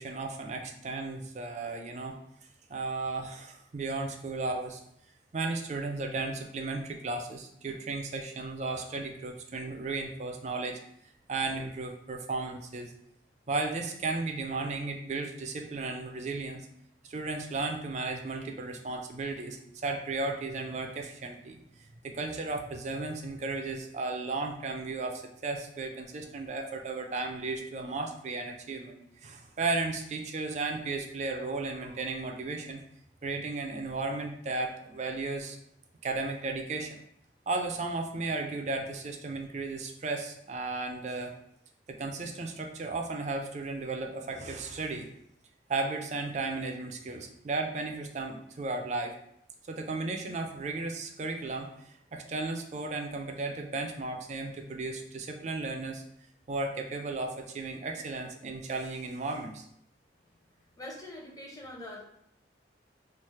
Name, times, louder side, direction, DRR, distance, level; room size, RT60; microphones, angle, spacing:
voice 1, 0.0-2.2 2.7-4.8 5.3-10.8 11.3-12.9 13.5-16.7 17.0-32.8 33.2-35.6 36.0-37.0 37.5-41.3 41.9-45.1 45.7-49.1 49.7-56.0 56.5-59.6, right 3 dB, 40° right, 3 dB, 0.4 m, -35 dB
voice 2, 60.8-62.0, left 1 dB, 20° left, -2 dB, 0.7 m, -43 dB
3.2 x 2.0 x 4.1 m, 0.73 s
head